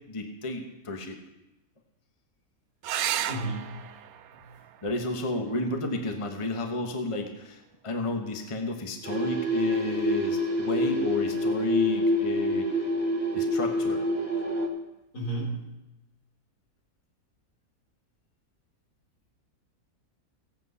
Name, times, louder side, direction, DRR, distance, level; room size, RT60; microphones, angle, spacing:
voice 1, 0.1-1.2 4.8-12.9 13.3-14.0, left 2 dB, 20° left, 4 dB, 1.2 m, -32 dB
sound 1, 2.8-7.9 9.7-10.4 13.8-13.9 14.3-14.4, right 11 dB, 75° right, 1.1 m, -37 dB
voice 2, 3.3-3.9 4.3-4.6 15.1-15.7, right 2 dB, 80° left, -3 dB, 4.8 m, -33 dB
sound 2, 9.0-14.7, equal, 30° right, 1.8 m, -27 dB
17.0 x 8.2 x 5.6 m, 0.93 s
omnidirectional pair, 1.6 m